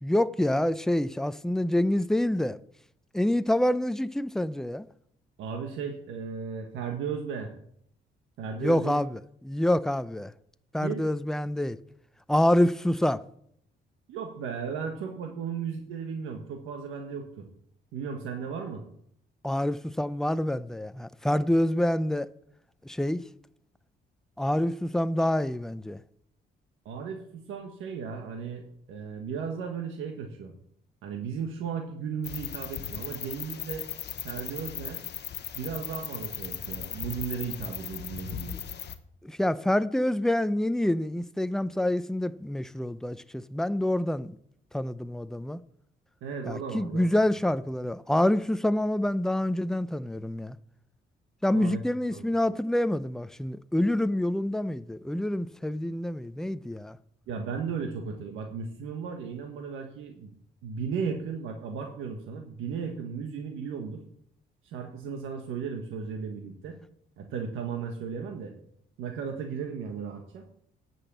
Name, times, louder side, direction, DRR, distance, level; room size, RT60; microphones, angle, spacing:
voice 1, 0.0-2.6 3.1-4.9 8.6-10.3 10.7-11.8 12.3-13.2 19.4-22.3 22.8-23.2 24.4-26.0 39.2-44.4 44.7-45.6 46.5-50.6 51.4-57.0, left 1 dB, ahead, 0.5 m, -27 dB
voice 2, 5.4-7.5 8.4-9.0 10.8-11.0 14.1-17.5 17.9-18.8 26.8-28.6 28.9-30.5 31.0-33.9 34.2-35.0 35.5-38.6 46.2-47.1 51.5-51.8 52.1-52.2 57.3-60.3 60.6-64.0 64.6-66.8 67.2-68.5 69.0-70.5, right 6 dB, 90° right, 1.4 m, -35 dB
sound 1, 32.2-38.9, left 9 dB, 60° left, 1.0 m, -37 dB
10.0 x 6.1 x 7.4 m
cardioid pair, 90°, 20 cm